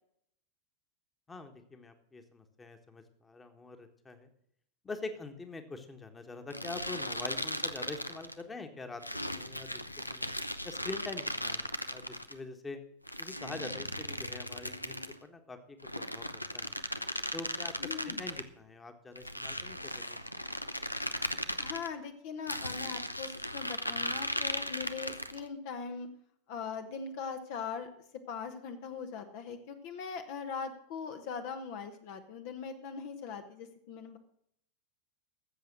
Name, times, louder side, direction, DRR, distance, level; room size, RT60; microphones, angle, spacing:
voice 1, 1.3-4.3 4.8-10.3 10.6-12.8 13.2-16.2 16.5-16.7 17.3-20.2, left 3 dB, 15° left, 7 dB, 1.5 m, -45 dB
sound 1, 6.5-8.4 9.0-12.3 13.1-15.2 15.8-18.5 19.2-21.9 22.5-25.4, left 1 dB, 85° left, 0.6 m, -37 dB
voice 2, 17.8-18.2 21.6-26.1 26.5-27.9 28.3-34.2, left 6 dB, 50° left, 7 dB, 1.1 m, -41 dB
13.5 x 7.7 x 6.1 m, 0.71 s
figure-of-eight pair, 90°, 0 cm